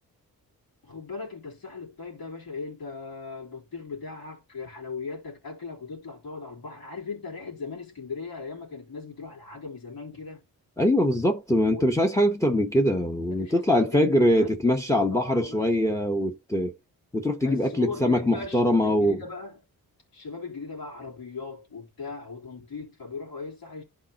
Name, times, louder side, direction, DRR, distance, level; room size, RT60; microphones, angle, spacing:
voice 1, 0.8-10.4 11.6-11.8 13.3-15.7 17.4-19.6 20.1-23.8, left 4 dB, 65° left, 3.6 m, -38 dB
voice 2, 10.8-16.7 17.1-19.2, left 1 dB, 10° left, 1.1 m, -23 dB
11.5 x 4.3 x 2.9 m
cardioid pair, 65°, 39 cm